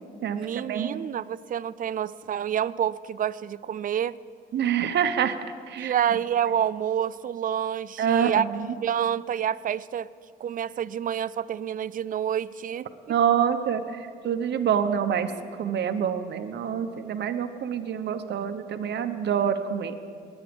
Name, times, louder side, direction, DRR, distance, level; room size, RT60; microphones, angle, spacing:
voice 1, 0.4-4.2 5.8-8.4 8.8-10.1 10.4-13.1, right 9 dB, 45° right, 19 dB, 0.4 m, -28 dB
voice 2, 4.5-5.4 5.7-5.9 8.0-8.3 13.1-13.8 14.2-15.3 15.6-19.9, right 8 dB, 60° right, 7 dB, 0.9 m, -26 dB
21.0 x 9.1 x 5.3 m, 2.4 s
cardioid pair, 90°, 20 cm